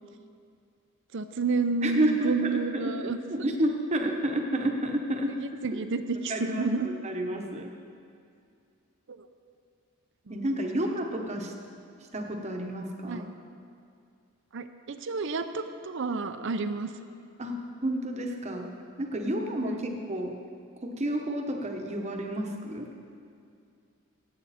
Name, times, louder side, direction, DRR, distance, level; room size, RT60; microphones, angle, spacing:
voice 1, 1.1-3.2 5.3-6.9 9.1-9.2 10.3-10.4 13.1-13.3 14.5-16.9 19.7-19.9, right 4 dB, 60° right, 9 dB, 0.6 m, -30 dB
voice 2, 1.8-2.9 3.3-5.3 6.3-6.7 7.0-7.7 10.3-11.5 12.1-13.2 17.4-18.7 19.0-20.4 20.8-22.9, right 1 dB, 30° right, 3 dB, 1.0 m, -30 dB
16.0 x 8.0 x 4.2 m, 2.3 s
head